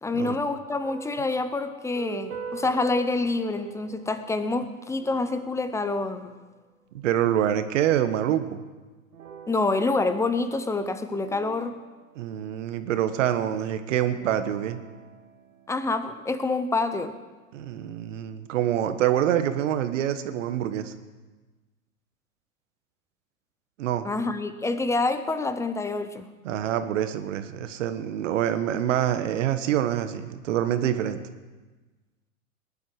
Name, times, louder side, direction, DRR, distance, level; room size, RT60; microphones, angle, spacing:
voice 1, 0.0-6.3 9.5-11.7 15.7-17.2 24.0-26.3, left 3 dB, 5° left, 10 dB, 0.7 m, -27 dB
sound 1, 0.8-6.8 9.1-12.9 14.2-16.9, right 7 dB, 75° right, 1.8 m, -45 dB
voice 2, 6.9-8.6 12.1-14.8 17.5-20.9 23.8-24.1 26.4-31.2, right 11 dB, 60° right, 10 dB, 1.4 m, -26 dB
20.0 x 11.5 x 4.8 m, 1.3 s
hypercardioid pair, 110°, 42 cm